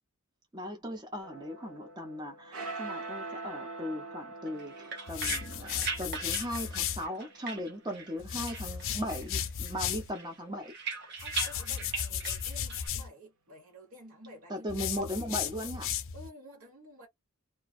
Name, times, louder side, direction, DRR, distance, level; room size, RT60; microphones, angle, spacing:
voice 1, 0.5-10.7 14.5-15.9, equal, 20° right, 0.6 m, -38 dB
sound 1, 1.2-9.8, right 3 dB, 90° right, 1.2 m, -45 dB
sound 2, 4.5-8.2 8.5-9.3 9.6-12.9, right 4 dB, 50° right, 0.9 m, -40 dB
sound 3, 5.1-7.1 8.2-10.1 11.2-13.1 14.7-16.3, left 9 dB, 60° left, 0.5 m, -35 dB
voice 2, 11.2-15.2 16.1-17.1, equal, 70° right, 1.2 m, -51 dB
2.4 x 2.2 x 2.4 m
head